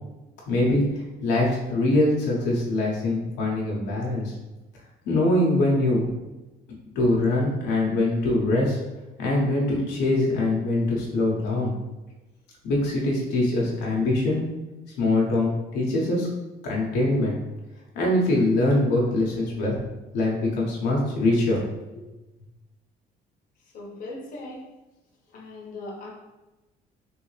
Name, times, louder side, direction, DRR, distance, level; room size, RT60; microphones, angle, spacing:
voice 1, 0.5-0.8 1.2-4.3 5.0-6.0 6.9-8.8 9.2-11.7 12.6-14.4 15.0-16.3 16.6-17.4 17.9-19.8 20.1-21.6, left 2 dB, 85° left, -3 dB, 1.0 m, -23 dB
voice 2, 23.7-24.7 25.3-26.1, left 2 dB, 55° left, -3 dB, 0.9 m, -38 dB
3.4 x 2.7 x 3.2 m, 1.1 s
cardioid pair, 110°, 17 cm